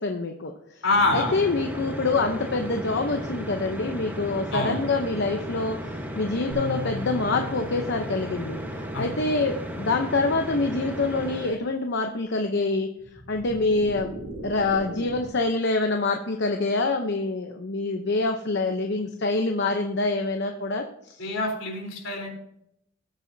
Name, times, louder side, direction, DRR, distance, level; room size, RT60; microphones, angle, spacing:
voice 1, 0.0-0.8 1.1-8.6 9.0-12.9 13.3-14.1 14.4-21.2, left 3 dB, 60° left, 4 dB, 0.8 m, -26 dB
voice 2, 0.8-1.3 4.5-4.8 8.9-9.1 21.2-22.3, left 2 dB, 75° left, 0 dB, 3.8 m, -25 dB
sound 1, 0.9-11.6, equal, 10° right, 1.2 m, -35 dB
sound 2, 6.5-9.8, left 4 dB, 25° right, 1.9 m, -39 dB
sound 3, 13.0-15.5, right 1 dB, 80° right, 2.7 m, -39 dB
19.5 x 7.4 x 2.8 m, 0.78 s
head